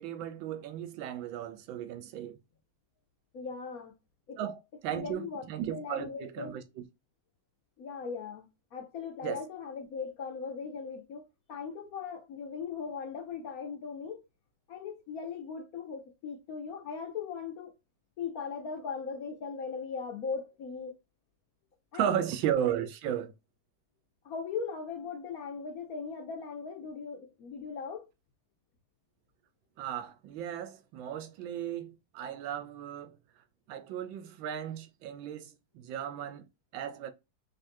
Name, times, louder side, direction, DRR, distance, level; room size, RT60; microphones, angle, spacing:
voice 1, 0.0-2.4 4.4-6.6 9.2-9.4 21.9-23.3 29.8-33.2 33.7-36.4 36.7-37.1, right 10 dB, 85° right, 1.4 m, -35 dB
voice 2, 3.3-3.9 4.3-4.4 4.9-5.4 5.7-6.5 7.8-14.2 14.7-17.7 18.2-21.0 21.9-22.2 24.2-28.1, left 5 dB, 65° left, 1.0 m, -39 dB
4.0 x 3.1 x 2.6 m
omnidirectional pair, 2.1 m